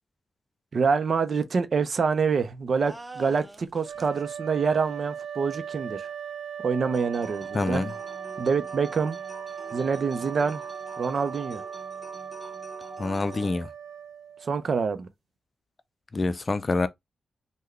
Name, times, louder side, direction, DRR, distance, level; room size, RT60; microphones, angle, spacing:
voice 1, 0.7-6.1 6.6-7.8 8.4-9.2 9.7-10.6 11.0-11.6 14.4-15.1, right 5 dB, 60° right, 0.6 m, -26 dB
sound 1, 2.7-4.2, right 2 dB, 20° right, 0.6 m, -44 dB
sound 2, 3.8-14.8, right 8 dB, 75° right, 1.0 m, -38 dB
sound 3, 6.9-13.5, equal, 15° left, 1.4 m, -46 dB
voice 2, 7.5-7.9 13.0-13.7 16.1-16.9, left 3 dB, 40° left, 0.4 m, -26 dB
3.5 x 2.2 x 3.2 m
supercardioid pair, 50°, 0 cm